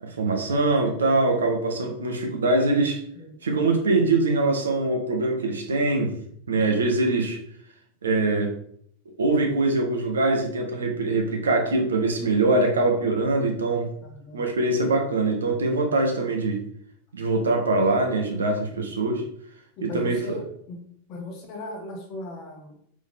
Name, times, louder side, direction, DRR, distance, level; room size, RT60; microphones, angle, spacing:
voice 1, 0.0-3.0 3.4-6.1 6.5-7.4 8.0-8.5 9.2-13.9 14.3-16.6 17.1-19.2 19.8-20.4, right 2 dB, 70° right, 2 dB, 0.8 m, -23 dB
voice 2, 14.0-14.5 19.8-20.8 21.1-22.9, left 2 dB, 35° left, 2 dB, 1.0 m, -38 dB
3.6 x 3.1 x 3.7 m, 0.66 s
figure-of-eight pair, 90°, 0 cm